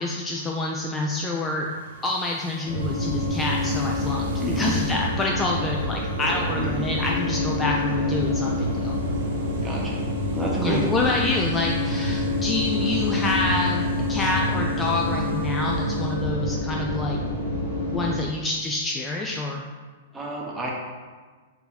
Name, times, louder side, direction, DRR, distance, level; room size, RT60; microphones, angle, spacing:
voice 1, 0.0-1.7 2.0-4.3 4.6-9.0 10.6-17.2 17.9-19.6, left 2 dB, 15° left, -1 dB, 0.3 m, -27 dB
sound 1, 1.5-16.2, right 5 dB, 60° right, 0.4 m, -43 dB
sound 2, 2.7-18.2, left 2 dB, 65° left, 1.1 m, -27 dB
voice 2, 4.4-4.8 6.5-6.9 9.6-10.0 10.3-11.1 20.1-20.7, right 2 dB, 15° right, -3 dB, 0.9 m, -29 dB
3.8 x 2.8 x 4.0 m, 1.4 s
hypercardioid pair, 125°, 0 cm